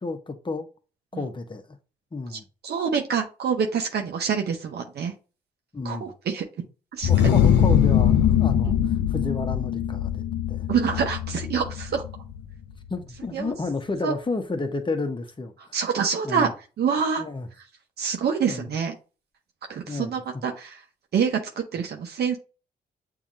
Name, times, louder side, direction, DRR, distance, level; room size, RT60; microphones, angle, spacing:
voice 1, 0.0-0.7 1.1-1.8 2.1-2.4 5.7-6.1 7.1-10.7 12.9-15.8 16.2-16.5 17.2-17.5 18.5-18.7 19.9-20.4, left 3 dB, 25° left, 1.1 m, -31 dB
voice 2, 2.3-5.1 5.8-6.4 6.9-7.1 8.6-8.7 10.7-12.0 13.3-13.5 14.0-14.1 15.7-16.5 16.8-17.2 18.0-18.9 19.7-20.8 21.1-22.4, right 6 dB, 65° right, 0.9 m, -26 dB
sound 1, 7.0-12.5, left 9 dB, 80° left, 0.6 m, -22 dB
6.9 x 2.8 x 2.6 m
supercardioid pair, 55°, 18 cm